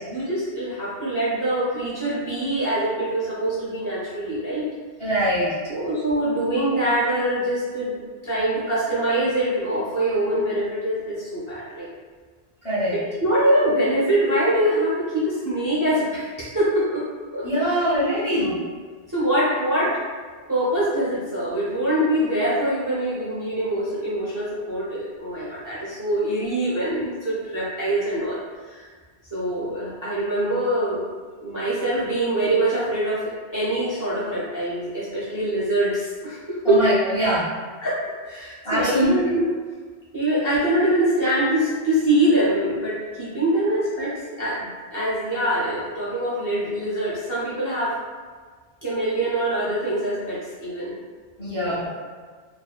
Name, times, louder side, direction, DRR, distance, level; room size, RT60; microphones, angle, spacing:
voice 1, 0.1-4.7 5.4-11.9 13.2-17.0 17.3-17.8 18.3-18.5 19.1-20.0 20.5-28.4 28.7-28.8 29.3-31.0 31.4-36.8 37.8-39.4 40.1-48.0 48.8-51.0 51.4-52.0, right 1 dB, 25° right, -9 dB, 0.5 m, -24 dB
voice 2, 5.0-5.5 12.6-13.0 17.4-18.6 36.6-37.5 38.6-39.1 51.4-51.9, equal, 35° left, -10 dB, 0.5 m, -23 dB
2.6 x 2.1 x 2.3 m, 1.5 s
omnidirectional pair, 1.1 m